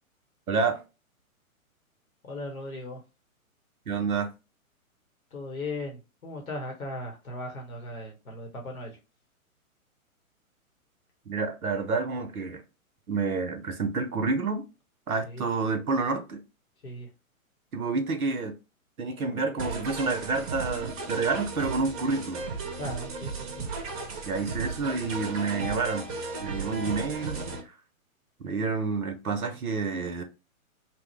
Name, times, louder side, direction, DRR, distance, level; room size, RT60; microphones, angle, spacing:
voice 1, 0.5-0.8 3.9-4.3 11.3-12.6 13.1-14.6 15.1-16.4 17.7-18.5 19.0-22.4 24.2-26.1 26.4-27.7 28.4-30.2, right 4 dB, 90° right, 0.6 m, -29 dB
voice 2, 2.2-3.0 5.3-9.0 15.2-15.5 16.8-17.1 22.8-23.7, left 1 dB, 80° left, 0.9 m, -38 dB
sound 1, 19.6-27.6, right 4 dB, 25° right, 0.6 m, -35 dB
2.9 x 2.0 x 3.0 m
figure-of-eight pair, 120°, 42 cm